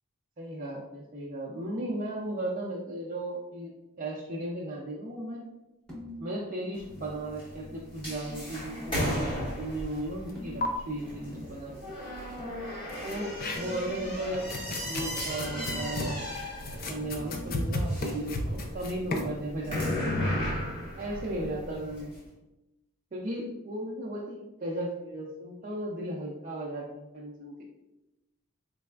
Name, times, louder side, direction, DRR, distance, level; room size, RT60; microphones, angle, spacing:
voice 1, 0.4-3.7 4.0-5.4 6.2-11.9 13.0-16.1 16.9-20.1 20.9-22.1 23.1-27.6, right 1 dB, 35° right, -5 dB, 0.4 m, -36 dB
sound 1, 5.9-6.3 6.6-9.5 10.3-11.6 12.4-14.1 15.5-17.7, equal, 5° left, 0.9 m, -45 dB
sound 2, 6.7-22.2, left 1 dB, 20° left, 1.2 m, -36 dB
sound 3, 10.3-10.4 10.6-10.7 12.9-13.9 14.3-19.3, left 1 dB, 40° left, 0.4 m, -34 dB
4.0 x 3.2 x 2.3 m, 0.98 s
head